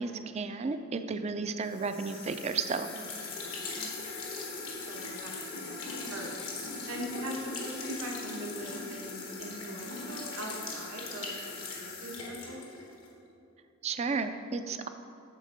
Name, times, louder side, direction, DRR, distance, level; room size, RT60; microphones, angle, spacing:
voice 1, 0.0-2.9 13.8-14.9, right 4 dB, 30° right, 9 dB, 0.3 m, -33 dB
sound 1, 1.7-13.1, left 3 dB, 85° left, 1.3 m, -40 dB
voice 2, 2.9-4.2 4.9-5.8 6.1-6.4 6.9-12.7, equal, 85° right, -2 dB, 1.3 m, -42 dB
8.3 x 3.6 x 6.6 m, 2.5 s
head